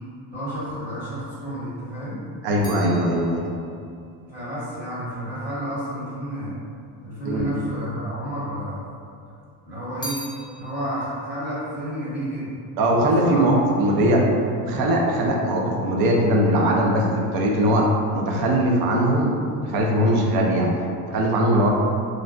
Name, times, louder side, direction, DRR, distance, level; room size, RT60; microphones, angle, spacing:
voice 1, 0.3-2.2 4.3-6.6 7.0-8.8 9.6-10.2 10.6-12.5 13.2-13.5 21.5-21.7, equal, 25° right, -12 dB, 1.3 m, -31 dB
sound 1, 1.7-6.1 6.9-7.7 8.0-9.1 9.4-13.0 13.2-13.8, equal, 10° left, 0.5 m, -43 dB
voice 2, 2.4-3.5 7.2-7.5 12.8-14.3 14.6-17.9 18.1-20.7 21.1-21.7, right 1 dB, 65° right, -1 dB, 0.6 m, -20 dB
3.1 x 2.5 x 2.3 m, 2.4 s
cardioid pair, 120°, 39 cm